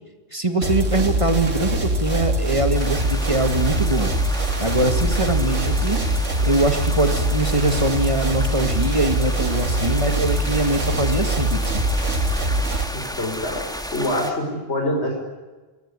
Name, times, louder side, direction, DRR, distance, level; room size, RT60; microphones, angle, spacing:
voice 1, 0.3-4.1 4.6-6.0 6.4-11.8, right 2 dB, 25° right, 7 dB, 2.0 m, -22 dB
sound 1, 0.6-12.9, right 1 dB, 90° right, 2.9 m, -23 dB
sound 2, 2.7-14.3, equal, 5° left, 2.1 m, -32 dB
voice 2, 12.9-13.6 13.9-15.2, left 1 dB, 60° left, 2 dB, 5.3 m, -25 dB
26.5 x 19.0 x 9.8 m, 1.2 s
omnidirectional pair, 1.3 m